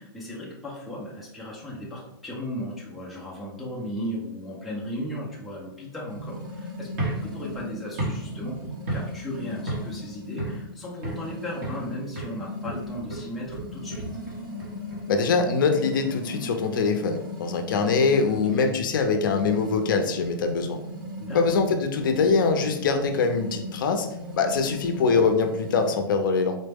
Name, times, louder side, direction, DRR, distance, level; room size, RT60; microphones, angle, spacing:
voice 1, 0.0-6.9 7.2-14.2 18.3-18.6 21.2-21.6, equal, ahead, -6 dB, 0.4 m, -36 dB
sound 1, 6.1-25.9, left 1 dB, 60° right, 1.1 m, -38 dB
sound 2, 6.9-9.3 9.7-10.0 10.4-11.3 11.6-11.9 12.2-15.3, right 2 dB, 35° right, 1.1 m, -34 dB
voice 2, 15.1-20.8 21.3-24.1 24.3-26.6, left 4 dB, 60° left, 6 dB, 0.5 m, -23 dB
4.0 x 2.1 x 3.3 m, 0.82 s
hypercardioid pair, 170°, 12 cm